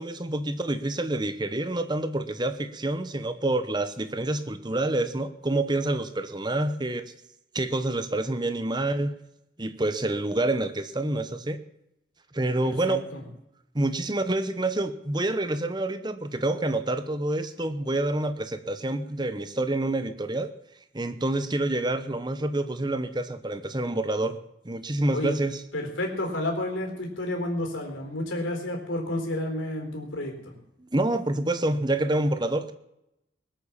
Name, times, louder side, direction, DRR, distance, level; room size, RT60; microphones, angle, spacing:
voice 1, 0.0-7.1 7.5-9.1 9.6-11.6 12.3-13.0 13.7-20.5 20.9-24.4 24.6-25.6 30.8-32.7, right 2 dB, 20° right, 10 dB, 0.9 m, -27 dB
voice 2, 12.6-13.2 25.1-25.4 25.7-30.3, left 1 dB, 80° left, 2 dB, 4.0 m, -31 dB
20.0 x 8.3 x 7.4 m, 0.83 s
head